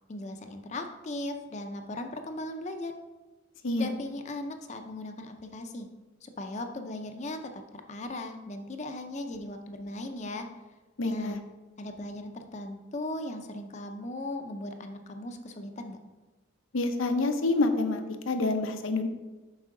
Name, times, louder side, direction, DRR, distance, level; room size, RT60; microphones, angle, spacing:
voice 1, 0.1-2.9 3.8-5.9 6.2-7.6 7.9-10.5 11.0-11.4 11.8-16.0, left 1 dB, 35° left, 6 dB, 0.5 m, -38 dB
voice 2, 11.0-11.4 16.7-19.1, left 2 dB, 90° left, 7 dB, 0.7 m, -27 dB
7.4 x 5.4 x 3.7 m, 1.2 s
head